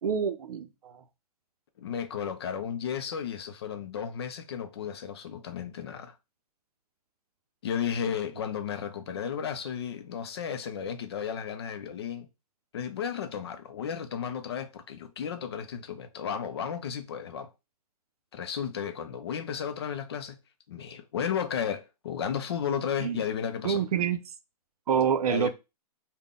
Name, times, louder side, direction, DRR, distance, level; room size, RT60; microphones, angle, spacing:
voice 1, 0.0-1.0 23.0-23.2 23.6-24.2 24.9-25.5, right 7 dB, 75° right, 0.5 m, -27 dB
voice 2, 1.8-6.1 7.6-12.3 12.7-17.5 18.3-20.4 20.7-23.8 25.3-25.5, left 8 dB, 40° left, 0.4 m, -33 dB
3.7 x 2.2 x 3.6 m
hypercardioid pair, 170°, 20 cm